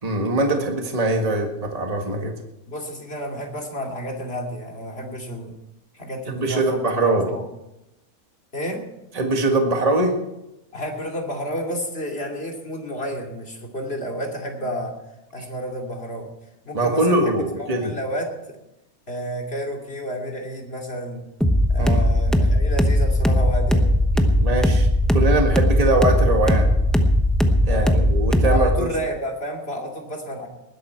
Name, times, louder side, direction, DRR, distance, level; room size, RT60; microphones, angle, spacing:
voice 1, 0.0-2.3 6.3-7.3 9.2-10.2 16.7-17.9 21.8-22.0 24.4-26.7 27.7-28.9, right 2 dB, 25° right, 3 dB, 1.9 m, -22 dB
voice 2, 2.7-5.5 5.9-7.4 8.5-8.8 10.7-14.9 15.3-16.3 16.6-18.6 19.1-21.3 21.7-23.9 27.7-27.9 28.4-30.5, equal, 45° left, 1 dB, 2.9 m, -31 dB
sound 1, 21.4-28.8, left 1 dB, ahead, 0.8 m, -18 dB
20.0 x 11.5 x 4.6 m, 0.90 s
omnidirectional pair, 1.5 m